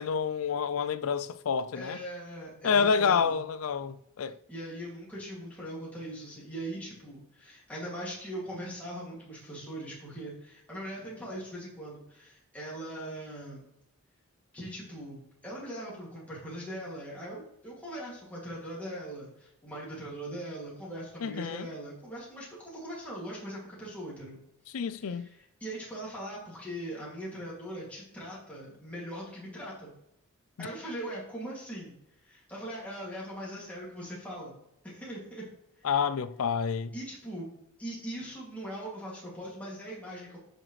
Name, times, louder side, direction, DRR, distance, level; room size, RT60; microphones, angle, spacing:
voice 1, 0.0-2.0 2.6-4.4 21.2-21.7 24.7-25.3 30.6-30.7 35.8-36.9, left 6 dB, 70° left, 0.4 m, -28 dB
voice 2, 1.7-3.3 4.5-13.6 14.5-24.4 24.9-29.9 30.6-31.9 32.2-34.5 34.8-35.5 35.8-35.9 36.9-37.5 37.8-40.4, right 1 dB, 5° left, 2.4 m, -40 dB
9.5 x 5.8 x 3.2 m
head